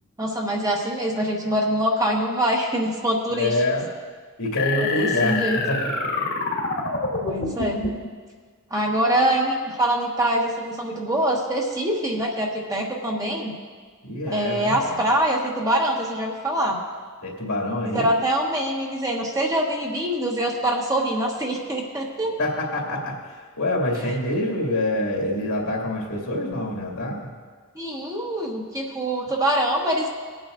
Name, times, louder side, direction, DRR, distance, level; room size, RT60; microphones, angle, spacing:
voice 1, 0.2-3.5 4.8-5.6 7.2-7.8 8.7-13.5 14.3-16.8 17.8-22.3 27.7-30.1, right 1 dB, 15° right, -1 dB, 1.3 m, -24 dB
voice 2, 3.3-3.9 4.4-5.4 5.7-6.1 14.0-15.0 17.2-18.1 22.4-23.1 23.6-27.2, left 1 dB, 80° left, -2 dB, 2.3 m, -26 dB
sound 1, 4.6-8.1, left 3 dB, 55° left, 1.7 m, -27 dB
19.5 x 8.9 x 2.6 m, 1.5 s
head